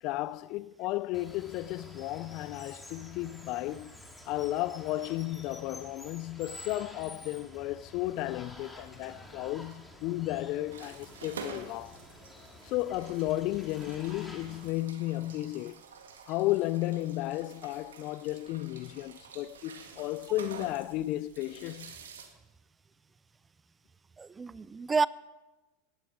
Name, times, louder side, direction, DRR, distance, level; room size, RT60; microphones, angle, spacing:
voice 1, 0.0-3.9 4.3-12.0 12.6-15.8 16.3-21.9, left 16 dB, 55° left, 0.5 m, -33 dB
Water, 1.1-14.7, left 1 dB, 10° left, 3.0 m, -50 dB
sound 1, 10.7-22.3, right 6 dB, 85° right, 2.0 m, -49 dB
voice 2, 24.2-25.1, right 4 dB, 20° right, 0.5 m, -29 dB
18.0 x 13.0 x 5.0 m
hypercardioid pair, 95°, 0 cm